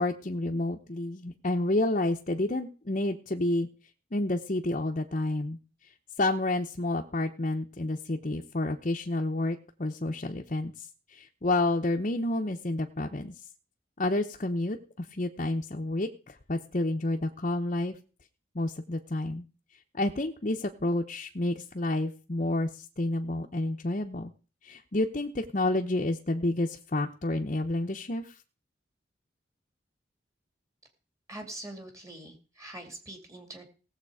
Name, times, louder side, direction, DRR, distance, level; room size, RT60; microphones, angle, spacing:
voice 1, 0.0-3.7 4.1-5.6 6.2-10.9 11.1-13.3 14.0-17.9 18.5-19.4 19.9-24.3 24.6-28.3, left 2 dB, 40° left, 1 dB, 0.9 m, -29 dB
voice 2, 31.3-33.6, right 1 dB, 15° right, 5 dB, 2.6 m, -43 dB
18.0 x 7.5 x 4.9 m, 0.36 s
head